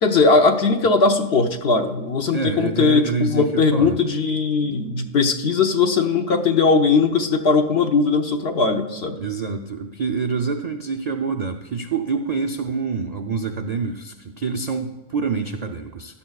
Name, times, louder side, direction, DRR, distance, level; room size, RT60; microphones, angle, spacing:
voice 1, 0.0-9.2, left 4 dB, 50° left, 6 dB, 1.0 m, -19 dB
voice 2, 2.3-4.0 9.2-16.2, right 5 dB, 75° right, 5 dB, 0.3 m, -26 dB
16.0 x 12.0 x 2.3 m, 1.1 s
omnidirectional pair, 1.5 m